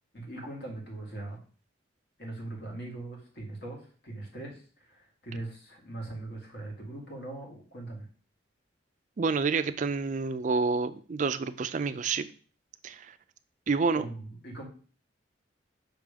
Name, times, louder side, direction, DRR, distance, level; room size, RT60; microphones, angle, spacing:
voice 1, 0.1-1.4 2.2-3.8 4.0-8.1 13.9-14.7, right 2 dB, 55° left, 2.0 m, -40 dB
voice 2, 9.2-12.3 12.8-13.2 13.7-14.1, right 4 dB, 40° right, 0.4 m, -28 dB
6.0 x 3.5 x 5.1 m
head